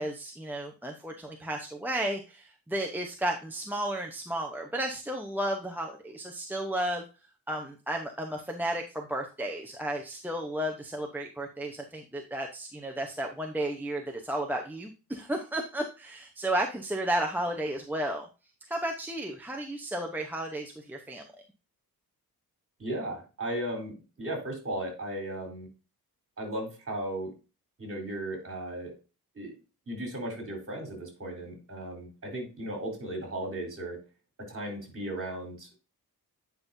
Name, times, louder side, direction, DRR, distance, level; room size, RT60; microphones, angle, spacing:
voice 1, 0.0-7.0 7.5-18.3 18.7-21.2, right 1 dB, 5° right, 1 dB, 0.9 m, -33 dB
voice 2, 22.8-25.7 26.4-27.3 27.8-28.9 29.4-29.5 29.9-34.0 34.4-35.8, right 1 dB, 35° right, 1 dB, 3.9 m, -36 dB
9.4 x 5.5 x 2.7 m, 0.32 s
wide cardioid pair, 115°, 39 cm